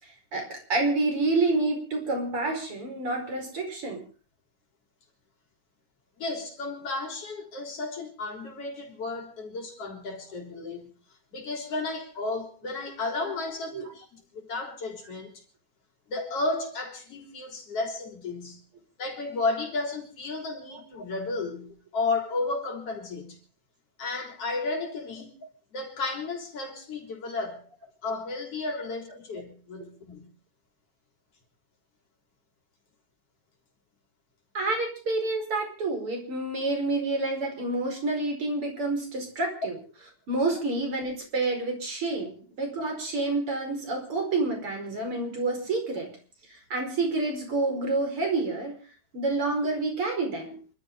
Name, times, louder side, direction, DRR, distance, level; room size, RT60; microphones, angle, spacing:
voice 1, 0.0-4.0 13.2-13.3 13.7-13.8 34.5-39.7 40.3-46.2 46.5-48.8 49.1-50.6, right 2 dB, 45° right, 5.8 m, -28 dB
voice 2, 6.2-10.9 11.3-15.3 16.1-18.6 19.0-23.4 24.0-25.4 25.7-27.6 28.0-30.3, left 3 dB, 50° left, 4.6 m, -33 dB
28.0 x 13.0 x 3.8 m
omnidirectional pair, 3.5 m